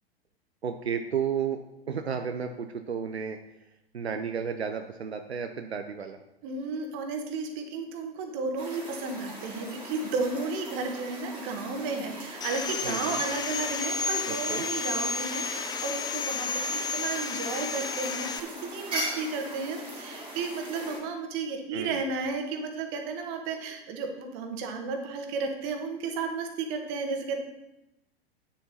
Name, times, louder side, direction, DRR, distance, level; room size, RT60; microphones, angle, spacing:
voice 1, 0.6-1.6 1.9-3.4 3.9-6.2 12.8-13.2 14.3-14.6 21.7-22.0, right 7 dB, 85° right, 6 dB, 0.7 m, -32 dB
voice 2, 6.4-18.3 18.6-27.4, right 4 dB, 40° right, 4 dB, 1.7 m, -33 dB
sound 1, 8.6-21.0, right 1 dB, 15° right, 3.1 m, -40 dB
Sawing, 12.4-18.4, left 5 dB, 15° left, 0.5 m, -32 dB
9.2 x 7.1 x 4.3 m, 0.93 s
figure-of-eight pair, 100°, 31 cm